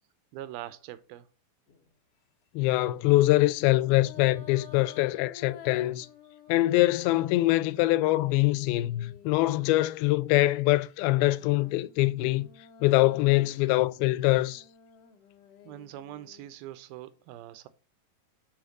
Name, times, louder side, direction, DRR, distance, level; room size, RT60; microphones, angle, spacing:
voice 1, 0.3-1.3 15.6-17.7, right 13 dB, 80° right, 2.4 m, -42 dB
sound 1, 1.7-2.0 3.4-10.0 10.9-16.5, left 8 dB, 70° left, 1.5 m, -51 dB
voice 2, 2.5-6.1 6.5-12.5 12.8-14.6, left 18 dB, 85° left, 2.4 m, -24 dB
8.0 x 3.5 x 6.5 m
omnidirectional pair, 4.3 m